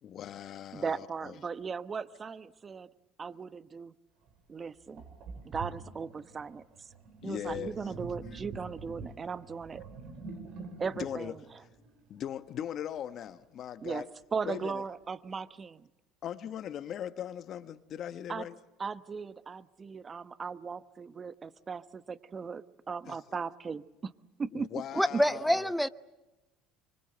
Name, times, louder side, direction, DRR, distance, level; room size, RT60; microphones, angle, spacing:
voice 1, 0.0-1.4 7.2-7.7 10.9-11.3 12.1-14.1 14.4-14.8 16.2-18.6 23.1-23.2 24.5-25.7, left 10 dB, 55° left, 1.2 m, -39 dB
voice 2, 0.7-2.9 3.2-3.9 4.5-5.0 5.4-6.6 7.2-9.8 10.8-11.3 13.8-14.0 14.3-15.9 18.3-18.5 18.8-24.1 24.4-24.8 25.1-25.2, right 5 dB, 30° right, 1.1 m, -37 dB
Sink (filling or washing), 4.3-4.4 5.0-12.3, right 4 dB, 65° right, 6.2 m, -46 dB
voice 3, 24.9-25.9, equal, ahead, 0.9 m, -26 dB
25.0 x 25.0 x 7.9 m
hypercardioid pair, 80°, 0 cm